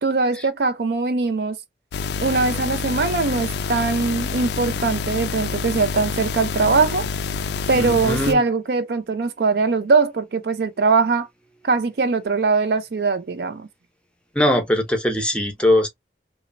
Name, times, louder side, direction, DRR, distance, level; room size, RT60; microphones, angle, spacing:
voice 1, 0.0-1.6 2.2-7.1 7.7-11.3 11.6-13.7, right 4 dB, 60° right, 0.4 m, -21 dB
sound 1, 1.9-8.3, left 5 dB, 70° left, 0.3 m, -27 dB
voice 2, 7.7-8.4 14.3-15.9, left 1 dB, 5° left, 0.6 m, -21 dB
2.9 x 2.0 x 2.5 m
head